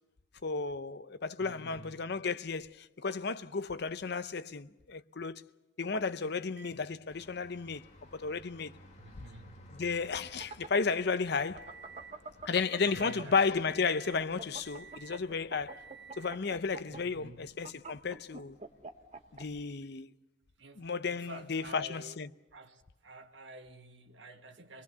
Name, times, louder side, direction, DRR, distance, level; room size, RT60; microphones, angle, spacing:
voice 1, 0.4-5.4 5.8-7.8 8.1-8.7 9.7-11.7 12.5-15.8 16.2-18.6 19.3-20.1 20.8-22.3, left 5 dB, 60° left, 0.7 m, -33 dB
voice 2, 1.4-2.1 9.0-9.8 12.9-13.5 16.9-17.6 20.6-22.2 22.5-24.8, right 1 dB, 80° right, 1.6 m, -50 dB
Microwave oven, 6.6-12.2 12.6-13.2 13.6-14.2 14.6-15.3 15.7-16.5 17.5-17.6 19.6-19.7, right 6 dB, 65° right, 5.3 m, -55 dB
sound 1, 7.1-19.6, left 1 dB, 40° left, 2.4 m, -59 dB
sound 2, 10.2-13.7 14.1-19.4, right 3 dB, 35° right, 1.2 m, -45 dB
26.0 x 20.0 x 6.8 m
head